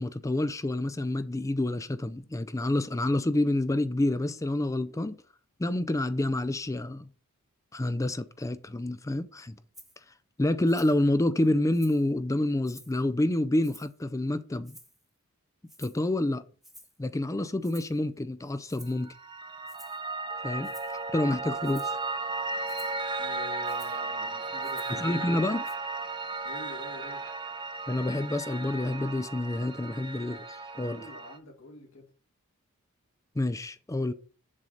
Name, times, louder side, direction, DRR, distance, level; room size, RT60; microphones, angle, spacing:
voice 1, 0.0-5.1 5.6-7.1 7.7-9.6 10.4-14.8 15.8-16.4 17.0-19.1 20.4-20.7 21.1-21.9 25.0-25.7 27.9-31.0 33.4-34.1, left 1 dB, 15° left, 0.4 m, -28 dB
Rattle (instrument), 9.7-10.0 10.7-11.0 11.4-12.1 12.6-13.0 13.6-14.0 14.6-15.1 15.7-16.0 16.6-17.0 17.6-18.0 18.7-19.0 19.7-20.1 20.6-21.0 21.6-22.0 22.6-23.0 23.6-24.0 24.6-25.0 25.6-25.7, equal, ahead, 1.1 m, -53 dB
Piano, 19.0-31.4, right 3 dB, 20° right, 0.7 m, -35 dB
voice 2, 23.2-25.2 26.4-27.2 30.7-32.1, left 1 dB, 65° left, 2.0 m, -47 dB
7.4 x 4.0 x 6.3 m
head